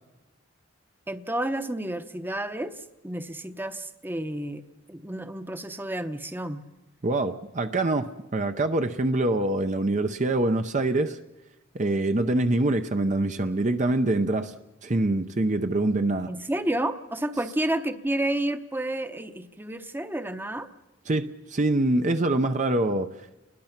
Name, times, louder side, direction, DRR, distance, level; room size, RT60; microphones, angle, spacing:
voice 1, 1.1-4.6 4.9-6.6 16.3-20.7, right 1 dB, 10° right, 0.9 m, -30 dB
voice 2, 7.0-11.2 11.7-14.5 14.8-16.3 21.1-23.1, right 2 dB, 35° right, 0.7 m, -25 dB
30.0 x 21.0 x 5.9 m
head